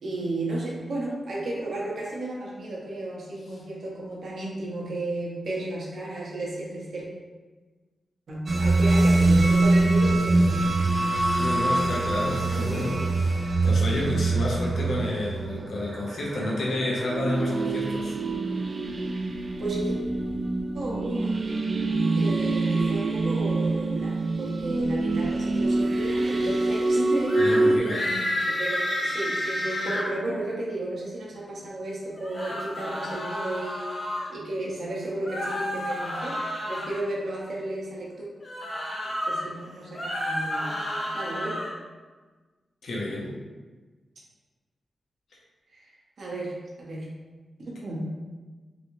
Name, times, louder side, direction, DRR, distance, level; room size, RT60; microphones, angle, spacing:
voice 1, 0.0-7.1 8.3-10.7 19.6-20.0 20.7-21.4 22.1-34.0 34.3-36.4 36.7-38.3 39.3-41.6 45.7-45.9 46.2-47.2 47.6-48.1, right 1 dB, 65° right, -4 dB, 0.8 m, -33 dB
sound 1, 8.5-27.8, right 2 dB, 40° right, 0.3 m, -24 dB
voice 2, 11.4-18.2 27.4-28.0 42.8-43.3, left 1 dB, 75° left, -3 dB, 0.8 m, -30 dB
sound 2, 27.3-27.6 27.8-30.1 32.1-34.3 35.2-37.0 38.4-39.4 39.8-41.7, left 1 dB, 35° left, 0.8 m, -30 dB
3.0 x 2.7 x 3.0 m, 1.3 s
wide cardioid pair, 105°, 0 cm